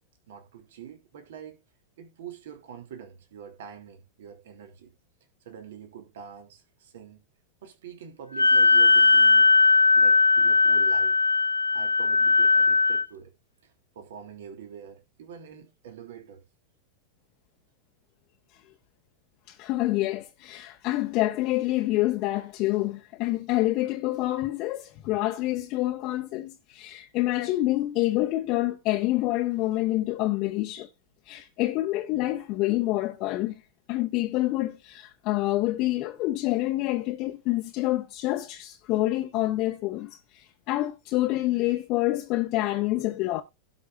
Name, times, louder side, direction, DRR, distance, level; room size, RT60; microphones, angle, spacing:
voice 1, 0.3-1.6 2.0-4.9 5.4-7.2 7.6-9.5 9.9-11.2 11.7-13.3 13.6-16.4, right 8 dB, 60° right, 2.9 m, -45 dB
Wind instrument woodwind instrument, 8.3-13.0, left 4 dB, 85° left, 0.6 m, -19 dB
voice 2, 19.5-30.9 31.3-33.5 33.9-43.4, left 17 dB, 40° left, 1.2 m, -27 dB
17.0 x 5.8 x 2.5 m
figure-of-eight pair, 90°, 0 cm